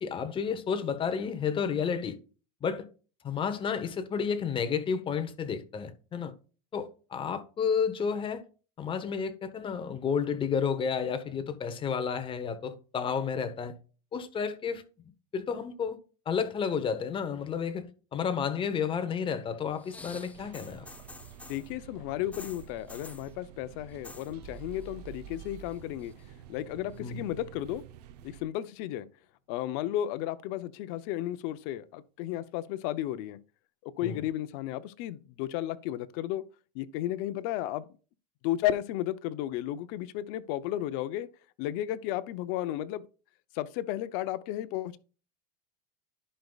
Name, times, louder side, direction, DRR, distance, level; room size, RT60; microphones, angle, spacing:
voice 1, 0.0-2.2 2.6-2.9 3.2-6.3 6.7-8.4 8.8-13.7 14.1-14.8 15.3-16.0 16.3-17.8 18.1-20.9 27.0-27.2 34.0-34.2, left 6 dB, 25° left, 1.0 m, -31 dB
sound 1, 19.7-21.7 22.3-23.3 23.9-24.3 24.6-25.1 25.4-26.2 27.0-27.1, left 2 dB, 5° left, 0.6 m, -49 dB
sound 2, 20.3-28.4, right 10 dB, 75° right, 0.8 m, -50 dB
voice 2, 21.5-26.1 26.5-27.8 28.2-29.1 29.5-33.4 33.8-36.4 36.7-37.9 38.4-41.3 41.6-43.1 43.5-45.0, left 13 dB, 60° left, 0.7 m, -33 dB
sound 3, 24.4-28.4, right 10 dB, 25° right, 0.9 m, -50 dB
11.0 x 5.3 x 2.3 m
supercardioid pair, 130°, 21 cm